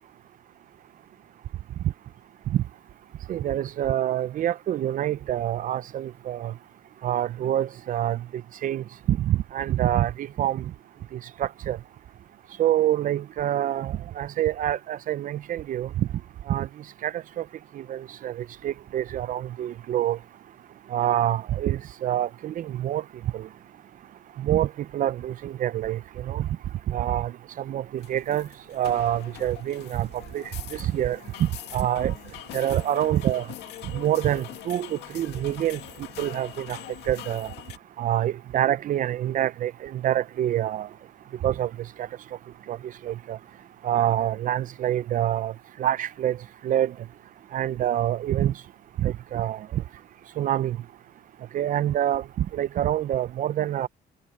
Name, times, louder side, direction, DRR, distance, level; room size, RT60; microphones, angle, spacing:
voice 1, 3.3-6.5 7.0-8.2 8.6-10.7 11.4-11.8 12.6-16.1 16.5-16.7 17.0-17.4 17.8-20.2 20.9-23.0 23.3-23.5 24.4-26.5 26.9-27.3 27.6-30.1 30.3-30.4 30.7-32.1 32.5-33.5 33.9-35.8 36.2-36.8 37.1-37.5 38.0-40.9 41.4-41.7 42.0-42.1 42.7-42.8 43.0-43.4 43.8-45.5 45.8-46.4 46.6-46.9 47.5-48.5 49.0-49.8 50.4-50.8 51.5-53.9, right 12 dB, 50° right, 0.6 m, -26 dB
sound 1, 28.0-37.8, left 15 dB, 80° left, 1.9 m, -43 dB
cardioid pair, 110°, 17 cm